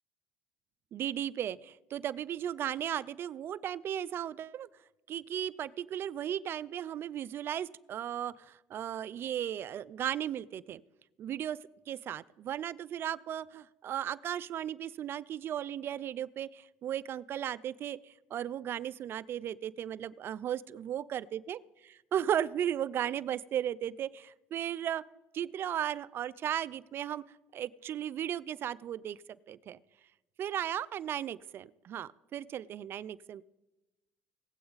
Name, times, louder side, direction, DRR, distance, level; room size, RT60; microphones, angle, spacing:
voice 1, 0.9-4.7 5.1-10.8 11.2-11.6 11.9-18.0 18.3-25.0 25.3-27.2 27.5-29.2 29.5-29.8 30.4-33.4, right 10 dB, 50° right, 20 dB, 0.4 m, -36 dB
19.5 x 7.9 x 4.0 m, 1.1 s
supercardioid pair, 95°, 5 cm